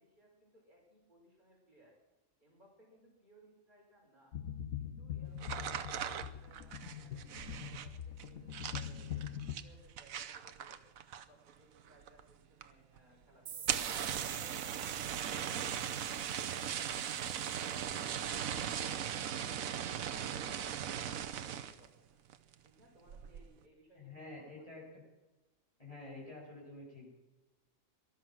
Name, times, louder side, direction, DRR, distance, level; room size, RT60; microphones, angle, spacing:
voice 1, 0.0-2.0 2.4-4.4 4.8-8.4 8.7-10.8 11.1-13.9 22.6-24.7, equal, 35° right, -3 dB, 5.6 m, -64 dB
sound 1, 4.3-9.6, left 9 dB, 80° left, 1.4 m, -43 dB
sound 2, 5.4-11.5 11.8-12.3 12.6-12.7 13.0-13.1 13.5-21.9 22.3-22.7 23.1-23.5, right 9 dB, 90° right, 1.3 m, -39 dB
sound 3, 13.5-18.1, right 8 dB, 50° right, 1.0 m, -50 dB
voice 2, 24.0-24.8 25.8-27.1, left 2 dB, 25° left, -4 dB, 6.8 m, -49 dB
19.5 x 12.0 x 6.2 m, 1.1 s
omnidirectional pair, 1.4 m